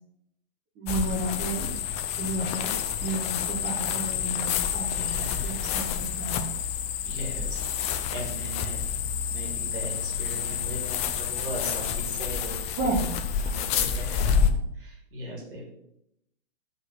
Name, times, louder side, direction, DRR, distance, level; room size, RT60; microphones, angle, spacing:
voice 1, 0.8-1.7 2.2-2.7 3.0-6.5 12.8-13.1, right 2 dB, 30° right, -4 dB, 2.8 m, -32 dB
sound 1, 0.9-14.5, left 7 dB, 20° left, 0.6 m, -29 dB
voice 2, 4.9-5.7 7.0-7.6 8.1-8.8 9.2-12.8 13.4-15.7, right 1 dB, 55° right, 0 dB, 3.2 m, -38 dB
8.0 x 5.2 x 6.5 m, 0.77 s
figure-of-eight pair, 120°, 31 cm